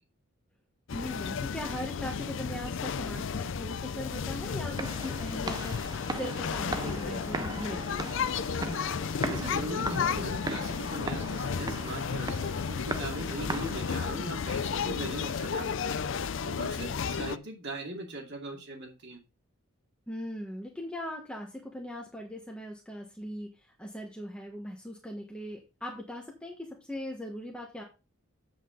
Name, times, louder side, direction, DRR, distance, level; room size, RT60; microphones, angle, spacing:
sound 1, 0.9-17.4, left 6 dB, 55° left, 0.4 m, -33 dB
voice 1, 0.9-8.1 20.1-27.8, equal, 5° left, -1 dB, 1.3 m, -40 dB
sound 2, 4.2-14.2, right 3 dB, 20° right, 0.5 m, -39 dB
voice 2, 9.2-16.0 16.4-19.2, right 1 dB, 50° right, 1 dB, 2.5 m, -40 dB
7.8 x 7.7 x 3.9 m, 0.29 s
head